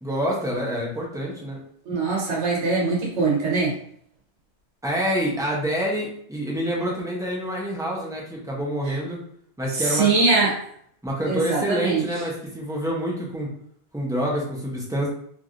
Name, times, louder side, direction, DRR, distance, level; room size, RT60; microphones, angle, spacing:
voice 1, 0.0-1.6 4.8-9.2 9.6-10.1 11.0-13.5 13.9-15.1, equal, 5° right, -4 dB, 0.6 m, -27 dB
voice 2, 1.9-3.7 8.9-9.0 9.7-10.5 11.3-12.0, right 3 dB, 85° right, -3 dB, 1.2 m, -22 dB
3.1 x 2.5 x 2.5 m, 0.64 s
omnidirectional pair, 1.1 m